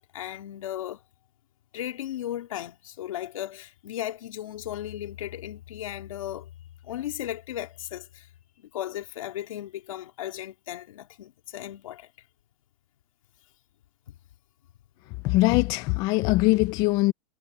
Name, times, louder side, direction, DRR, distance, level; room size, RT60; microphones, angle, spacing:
voice 1, 0.1-1.0 1.7-6.5 6.8-8.3 8.6-12.1 14.1-14.2, left 12 dB, 85° left, 3.4 m, -36 dB
voice 2, 15.2-17.1, left 20 dB, 25° left, 0.3 m, -22 dB
supercardioid pair, 170°, 17 cm